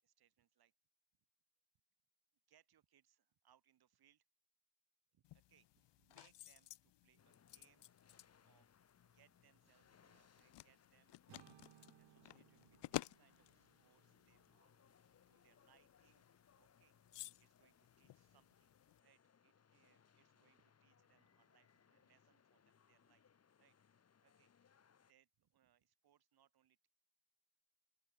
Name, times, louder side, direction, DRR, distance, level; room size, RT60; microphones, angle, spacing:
voice 1, 0.0-0.7 2.5-4.2 5.1-7.9 8.4-14.7 15.3-18.7 19.0-23.8 24.2-24.5 25.1-26.9, right 10 dB, 55° right, 7.8 m, -76 dB
sound 1, 5.2-19.0, left 15 dB, 70° left, 1.3 m, -55 dB
sound 2, 7.2-25.1, left 7 dB, 35° left, 4.1 m, -72 dB
sound 3, 11.3-15.3, right 13 dB, 85° right, 4.1 m, -68 dB
open air
cardioid pair, 180°, 43 cm